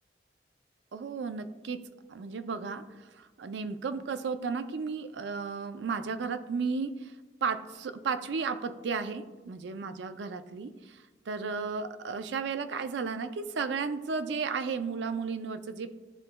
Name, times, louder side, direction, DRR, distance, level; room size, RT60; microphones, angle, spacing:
voice 1, 0.9-7.2 7.4-16.0, right 5 dB, 75° right, 11 dB, 0.4 m, -34 dB
11.0 x 3.9 x 2.2 m, 1.3 s
head